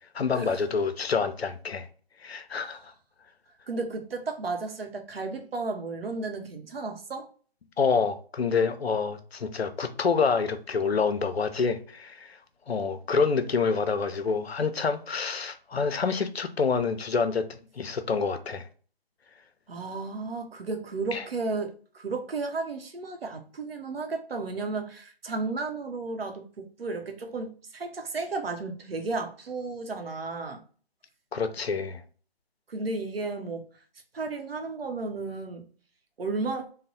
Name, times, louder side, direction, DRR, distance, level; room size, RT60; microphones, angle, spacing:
voice 1, 0.1-1.9 2.2-2.9 7.8-12.4 12.7-18.7 21.1-21.2 31.3-32.0, left 5 dB, 80° left, 0.6 m, -27 dB
voice 2, 3.7-7.3 19.7-30.6 32.7-33.6 34.1-35.7 36.2-36.7, right 3 dB, 70° right, 0.8 m, -33 dB
3.2 x 2.1 x 4.0 m
figure-of-eight pair, 155°, 31 cm